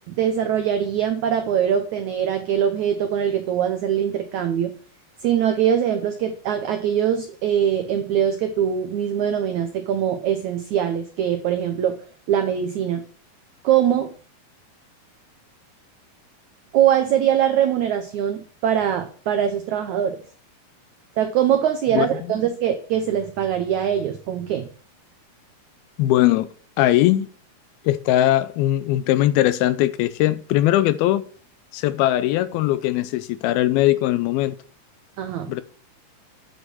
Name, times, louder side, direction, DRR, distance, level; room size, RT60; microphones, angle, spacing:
voice 1, 0.1-4.8 5.2-12.0 12.3-13.0 13.6-14.1 16.7-20.2 21.2-24.7 35.2-35.5, right 9 dB, 85° right, 1.6 m, -22 dB
voice 2, 26.0-26.5 26.8-27.3 27.9-31.2 31.7-34.6 35.5-35.6, left 14 dB, 80° left, 2.3 m, -20 dB
9.6 x 5.4 x 6.2 m
omnidirectional pair, 4.5 m